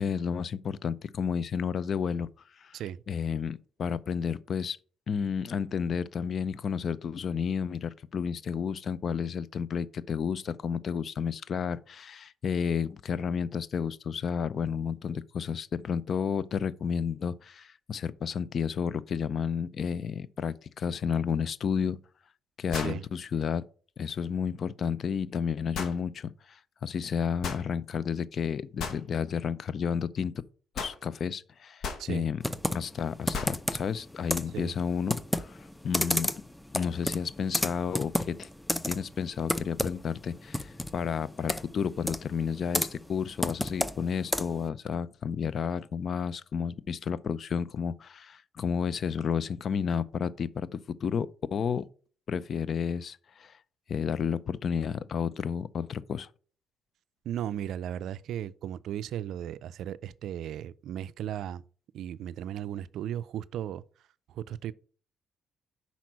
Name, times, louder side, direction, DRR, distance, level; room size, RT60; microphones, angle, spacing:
voice 1, 0.0-2.3 2.6-2.8 3.1-4.8 5.1-22.0 22.6-23.6 24.0-30.3 30.8-32.4 32.7-36.3 36.7-38.5 38.9-51.8 52.3-53.6 53.9-56.3, left 7 dB, 55° left, 0.5 m, -31 dB
sound 1, 21.5-21.6 22.7-23.1 25.7-26.0 27.4-27.7 28.8-29.0 30.7-31.0 31.8-32.1 33.3-33.6, left 5 dB, 70° left, 1.1 m, -35 dB
voice 2, 22.7-23.0 32.0-32.3 34.5-34.7 57.2-61.6 61.9-63.8 64.3-64.7, right 10 dB, 70° right, 0.3 m, -36 dB
Computer keyboard, 32.4-44.7, left 1 dB, 10° left, 0.6 m, -33 dB
5.9 x 4.1 x 6.1 m
supercardioid pair, 60°, 0 cm